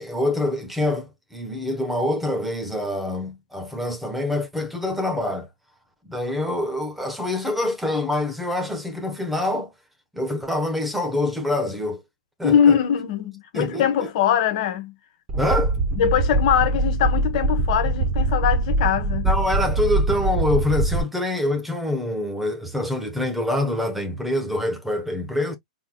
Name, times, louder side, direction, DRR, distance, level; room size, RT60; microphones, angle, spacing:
voice 1, 0.0-5.5 6.1-9.7 10.1-12.0 12.4-12.8 13.5-14.1 15.4-15.8 19.2-25.6, left 1 dB, 5° right, 1.2 m, -25 dB
voice 2, 12.4-14.9 15.9-19.3, left 9 dB, 55° left, 1.5 m, -21 dB
sound 1, 15.3-21.0, right 2 dB, 25° right, 2.3 m, -23 dB
4.5 x 3.7 x 2.3 m
hypercardioid pair, 120°, 4 cm